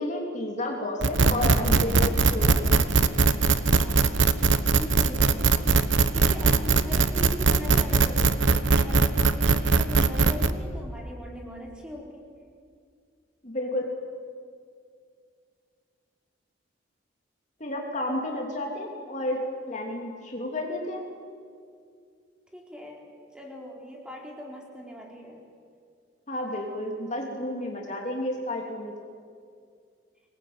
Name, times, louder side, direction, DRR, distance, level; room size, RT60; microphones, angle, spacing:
voice 1, 0.0-2.7 13.4-13.8 17.6-19.4 19.7-21.0 26.3-29.1, left 1 dB, 40° left, 1 dB, 3.0 m, -31 dB
sound 1, 1.0-10.5, right 4 dB, 70° right, 1.1 m, -21 dB
voice 2, 3.7-4.2 4.7-5.6 6.0-12.3 22.5-25.5, equal, 5° right, -1 dB, 4.2 m, -40 dB
25.0 x 20.5 x 9.5 m, 2.2 s
head